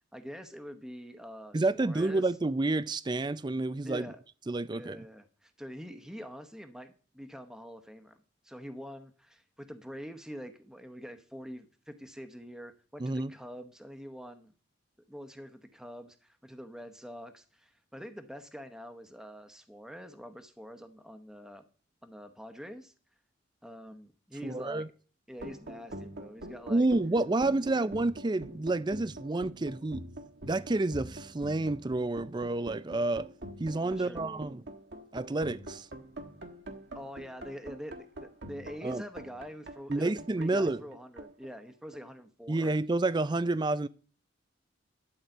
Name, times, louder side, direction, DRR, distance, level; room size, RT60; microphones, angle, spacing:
voice 1, 0.1-2.3 3.8-4.2 4.7-8.1 8.4-14.5 15.1-21.6 22.0-22.9 23.6-24.9 25.3-26.9 27.6-27.8 33.8-34.5 36.9-42.7, equal, 5° right, 0.9 m, -45 dB
voice 2, 1.5-4.1 4.5-5.0 13.0-13.3 24.4-24.9 26.7-30.1 30.5-33.3 33.6-34.6 35.1-35.9 38.8-39.0 39.9-40.8 42.5-43.9, right 2 dB, 20° right, 0.4 m, -29 dB
sound 1, 25.3-42.2, right 1 dB, 60° right, 1.3 m, -45 dB
11.5 x 4.8 x 7.8 m
head